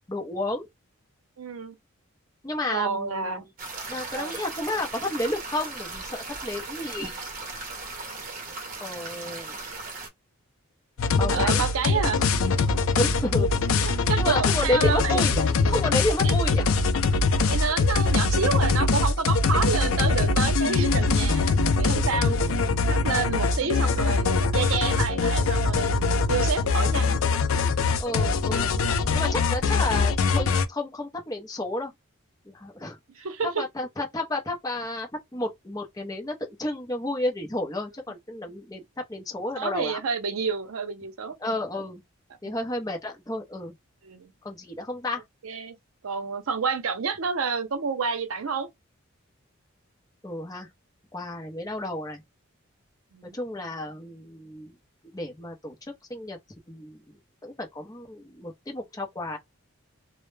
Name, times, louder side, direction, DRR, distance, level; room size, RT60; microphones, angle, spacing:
voice 1, 0.1-0.7 2.4-3.4 3.9-7.3 8.8-9.6 11.1-11.6 12.2-12.4 12.9-16.7 28.0-28.8 29.1-31.9 32.5-33.0 33.4-38.8 39.1-40.0 41.4-42.0 42.4-43.7 44.4-45.2 50.2-50.7 51.1-52.2 53.3-54.7 55.0-55.7 56.1-56.4 56.7-57.1 57.4-59.4, left 1 dB, 15° left, 0.6 m, -31 dB
voice 2, 1.4-1.8 2.7-3.4 4.1-4.3 11.3-12.2 12.5-12.8 13.8-15.2 16.1-16.4 17.5-22.4 22.8-27.2 27.5-27.7 33.1-33.7 39.6-41.4 42.4-42.5 44.0-44.3 45.4-45.8 46.0-48.7 53.1-53.4, right 5 dB, 75° right, 0.6 m, -29 dB
sound 1, 3.6-10.1, right 3 dB, 40° right, 0.7 m, -37 dB
sound 2, 11.0-30.7, left 4 dB, 70° left, 0.4 m, -23 dB
2.1 x 2.0 x 3.1 m
head